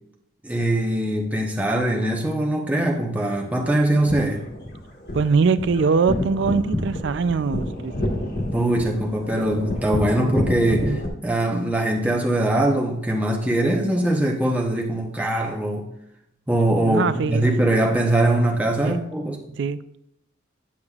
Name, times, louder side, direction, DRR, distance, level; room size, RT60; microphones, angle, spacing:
voice 1, 0.4-4.4 8.5-15.9 16.5-19.4, right 1 dB, 10° right, 0.8 m, -22 dB
sound 1, 3.9-11.1, left 1 dB, 55° left, 1.4 m, -29 dB
voice 2, 5.1-7.9 16.9-17.5 18.8-19.0 19.6-19.8, right 5 dB, 60° right, 0.4 m, -22 dB
9.6 x 7.2 x 2.4 m
head